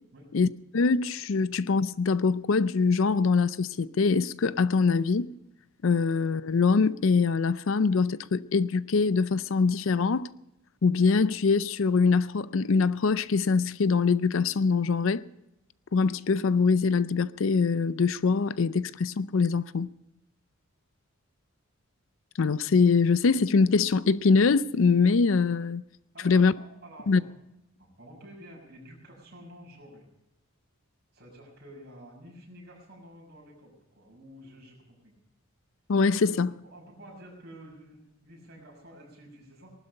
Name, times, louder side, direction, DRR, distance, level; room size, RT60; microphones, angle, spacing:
voice 1, 0.7-5.3 5.8-10.3 10.8-15.2 15.9-19.9 22.4-25.8 26.2-26.5 27.1-27.2 35.9-36.5, left 4 dB, 65° left, 0.5 m, -23 dB
voice 2, 26.1-27.2 27.8-30.0 31.1-35.1 36.2-39.7, equal, 45° right, 6.4 m, -50 dB
19.5 x 12.0 x 5.4 m
head